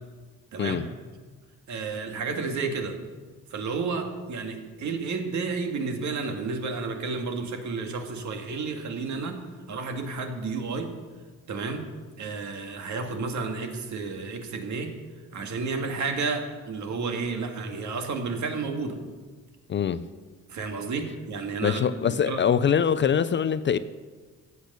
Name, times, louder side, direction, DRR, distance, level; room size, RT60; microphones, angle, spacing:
voice 1, 0.5-0.9 1.7-3.0 3.5-10.9 11.5-11.9 12.2-15.0 15.3-19.0 20.5-22.4, right 4 dB, 60° right, 1.9 m, -31 dB
voice 2, 19.7-20.0 21.6-23.8, left 8 dB, 35° left, 0.4 m, -23 dB
14.5 x 8.4 x 6.7 m
cardioid pair, 145°, 32 cm